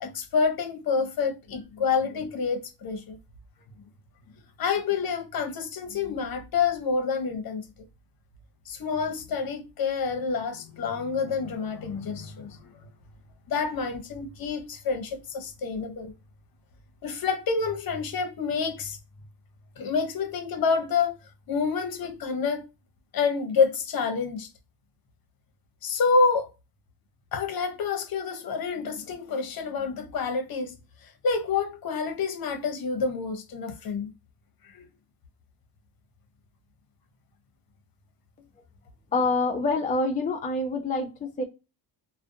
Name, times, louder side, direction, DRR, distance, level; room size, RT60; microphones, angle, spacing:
voice 1, 0.0-3.2 4.6-7.6 8.7-12.7 13.5-16.1 17.0-19.0 19.8-21.2 21.5-22.6 23.1-24.5 25.8-26.5 27.3-30.7 31.2-34.1 34.7-34.8, left 5 dB, 50° left, 0.7 m, -28 dB
voice 2, 39.1-41.4, left 3 dB, 20° left, 0.4 m, -26 dB
2.4 x 2.1 x 2.5 m
cardioid pair, 90°, 48 cm